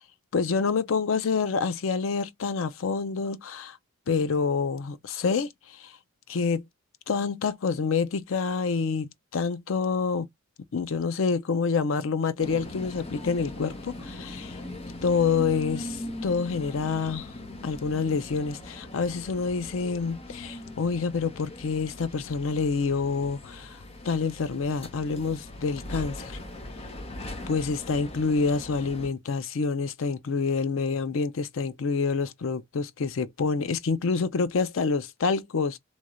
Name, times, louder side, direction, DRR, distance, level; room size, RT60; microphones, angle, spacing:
voice 1, 0.3-3.8 4.1-5.9 6.3-6.6 7.1-10.3 10.7-14.6 15.0-17.3 17.6-23.8 24.0-26.4 27.5-35.8, left 5 dB, 85° left, 0.5 m, -27 dB
sound 1, 12.4-29.1, left 1 dB, 30° left, 0.9 m, -40 dB
3.1 x 3.1 x 2.4 m
head